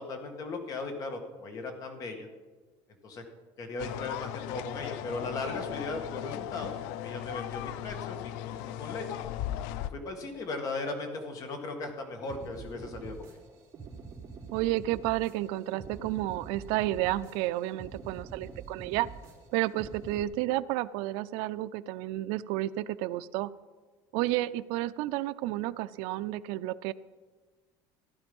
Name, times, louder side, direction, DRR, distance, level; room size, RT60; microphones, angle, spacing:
voice 1, 0.0-2.3 3.0-3.2 3.6-6.7 7.0-9.2 9.9-13.2, left 3 dB, 35° left, 4 dB, 1.8 m, -37 dB
sound 1, 3.8-9.9, left 12 dB, 90° left, 0.5 m, -37 dB
sound 2, 12.2-20.2, right 5 dB, 30° right, 3.3 m, -46 dB
voice 2, 14.5-19.1 19.5-23.5 24.1-26.9, right 16 dB, 80° right, 13 dB, 0.5 m, -31 dB
15.0 x 11.0 x 5.4 m, 1.4 s
cardioid pair, 170°, 10 cm